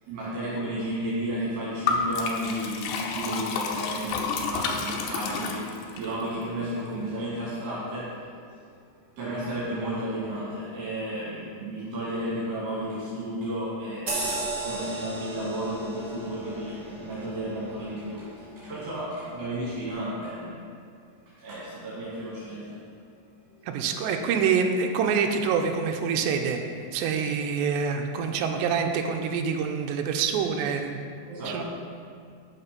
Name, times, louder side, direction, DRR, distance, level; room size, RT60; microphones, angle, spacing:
voice 1, 0.0-8.6 9.2-14.2 14.6-20.6 21.3-22.9 31.3-31.6, right 1 dB, 70° right, -9 dB, 4.1 m, -33 dB
Liquid, 1.9-6.1, left 5 dB, 85° left, 2.9 m, -30 dB
sound 1, 14.1-19.0 19.5-19.6, right 2 dB, 40° right, 1.6 m, -36 dB
voice 2, 23.6-26.6 26.9-31.0 31.5-31.6, right 6 dB, 85° right, 4 dB, 2.8 m, -26 dB
12.5 x 5.8 x 5.3 m, 2.2 s
omnidirectional pair, 5.1 m